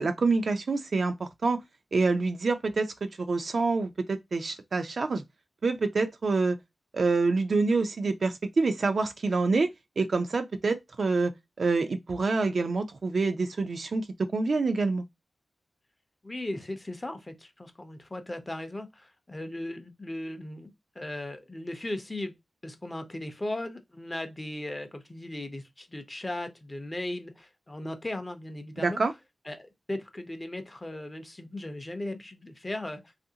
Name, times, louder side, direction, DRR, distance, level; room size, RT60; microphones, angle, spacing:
voice 1, 0.0-1.6 1.9-5.2 5.6-6.6 6.9-9.7 10.0-11.3 11.6-14.1 14.3-15.0 28.8-29.1, right 3 dB, 60° right, 0.4 m, -26 dB
voice 2, 16.2-20.7 21.0-22.3 22.6-29.0 29.4-33.0, left 1 dB, 20° left, 0.5 m, -37 dB
3.1 x 2.5 x 2.7 m
wide cardioid pair, 110°, 0 cm